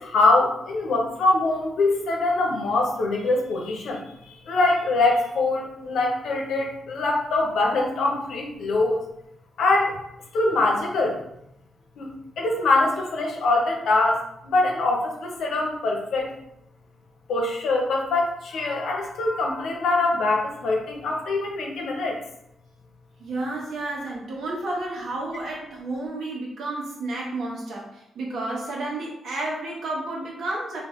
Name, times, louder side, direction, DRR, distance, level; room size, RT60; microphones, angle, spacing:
voice 1, 0.0-9.0 9.6-10.0 10.3-11.2 12.0-16.3 17.3-22.2, left 2 dB, 85° left, 0 dB, 0.8 m, -23 dB
voice 2, 23.2-30.8, right 2 dB, 75° right, -3 dB, 1.1 m, -31 dB
3.5 x 2.7 x 3.1 m, 0.79 s
cardioid pair, 85°, 0 cm